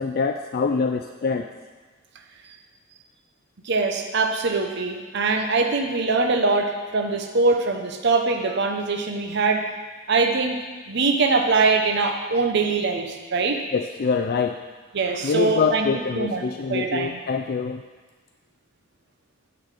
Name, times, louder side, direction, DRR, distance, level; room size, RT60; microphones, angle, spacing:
voice 1, 0.0-1.5 13.7-14.6 15.2-17.8, left 5 dB, 50° left, 5 dB, 0.4 m, -25 dB
voice 2, 3.6-9.7 10.1-10.6 10.9-13.6 14.9-15.9 16.1-16.4 16.7-17.2, right 3 dB, 60° right, 4 dB, 0.8 m, -22 dB
9.7 x 4.0 x 6.5 m, 1.3 s
head